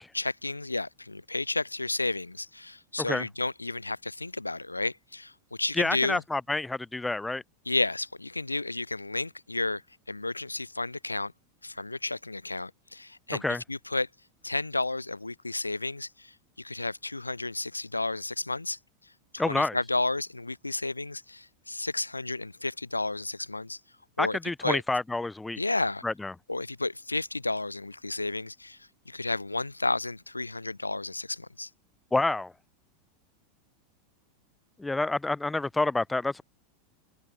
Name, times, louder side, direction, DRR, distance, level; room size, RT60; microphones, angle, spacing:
voice 1, 0.0-5.3 5.6-6.2 7.7-9.8 10.1-11.3 11.6-13.4 13.7-14.1 14.4-18.8 19.3-23.8 24.2-24.8 25.6-26.0 26.5-28.8 29.1-31.7, left 2 dB, 90° left, 0.7 m, -32 dB
voice 2, 5.7-7.4 13.4-13.6 19.4-19.8 24.2-25.6 26.0-26.3 32.1-32.5 34.8-36.4, left 2 dB, 10° left, 0.6 m, -28 dB
figure-of-eight pair, 85°, 0 cm